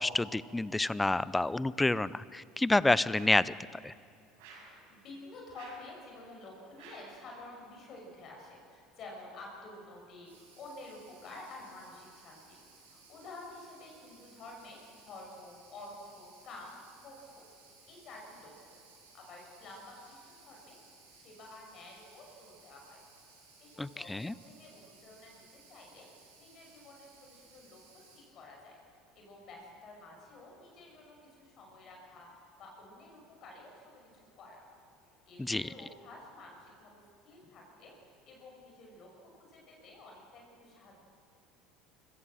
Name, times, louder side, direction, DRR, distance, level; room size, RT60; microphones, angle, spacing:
voice 1, 0.0-3.5 3.8-3.9 23.8-24.3 35.4-35.7, left 2 dB, 10° left, 19 dB, 0.6 m, -29 dB
sound 1, 3.1-3.5 4.4-4.8 5.5-5.9 6.8-7.2, right 4 dB, 70° right, 6.5 m, -52 dB
voice 2, 4.5-12.6 12.8-17.4 17.9-18.8 19.1-20.8 21.1-23.0 23.6-26.1 26.4-28.8 29.1-34.1 34.3-34.6 35.3-41.0, left 2 dB, 50° left, 0 dB, 6.4 m, -50 dB
sound 2, 10.2-28.2, right 4 dB, 85° right, 6.7 m, -60 dB
24.5 x 16.0 x 7.7 m, 2.8 s
hypercardioid pair, 70°, 0 cm